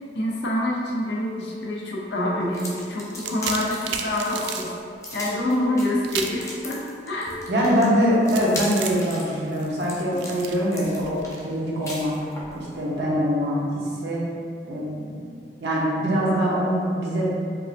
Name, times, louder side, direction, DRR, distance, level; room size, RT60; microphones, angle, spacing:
voice 1, 0.1-4.7 5.1-6.8 7.1-7.3, left 1 dB, 75° left, -3 dB, 0.6 m, -26 dB
Telephone, 1.1-1.7 2.2-2.7 3.2-3.7 4.2-4.7 5.2-5.7 6.2-6.7 7.2-7.7 8.2-8.7, left 2 dB, 40° right, 0.7 m, -39 dB
sound 1, 2.5-12.6, left 1 dB, 15° left, 0.5 m, -38 dB
sound 2, 3.0-4.7 6.0-6.5 8.3-11.4, right 7 dB, 85° right, 0.3 m, -33 dB
voice 2, 7.5-12.1 12.5-14.3 14.6-15.2 15.6-17.2, equal, 70° right, -6 dB, 0.8 m, -23 dB
4.6 x 2.5 x 2.5 m, 2.3 s
head